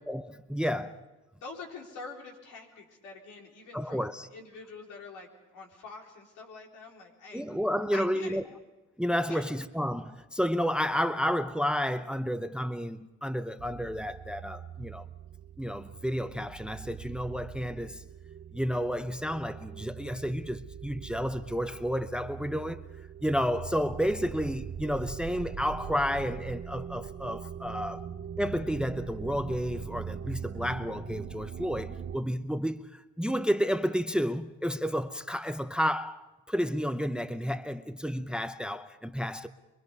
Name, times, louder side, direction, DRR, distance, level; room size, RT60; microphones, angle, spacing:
voice 1, 0.1-0.9 3.7-4.3 7.3-8.4 9.0-15.1 15.6-18.0 18.5-22.8 23.2-28.1 28.4-39.5, equal, 5° right, 0.7 m, -31 dB
voice 2, 1.4-7.5 7.9-8.4 9.3-9.5, left 4 dB, 85° left, 4.1 m, -45 dB
sound 1, 13.6-32.2, right 8 dB, 40° right, 0.7 m, -42 dB
24.5 x 22.5 x 5.4 m
cardioid pair, 90°, 30 cm